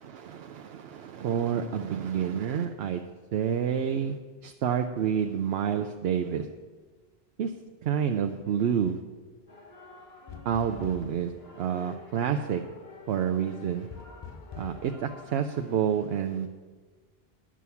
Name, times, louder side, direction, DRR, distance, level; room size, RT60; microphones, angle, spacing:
voice 1, 0.1-3.0 3.3-4.2 4.4-6.5 7.4-7.5 7.8-9.0 10.5-11.3 11.6-12.6 13.1-13.9 14.6-16.5, right 8 dB, 75° right, 6 dB, 0.8 m, -28 dB
sound 1, 9.5-15.8, left 3 dB, 70° left, 1.4 m, -50 dB
sound 2, 10.3-11.3 13.9-14.8, left 6 dB, 40° left, 0.4 m, -43 dB
11.0 x 6.2 x 7.0 m, 1.4 s
omnidirectional pair, 1.1 m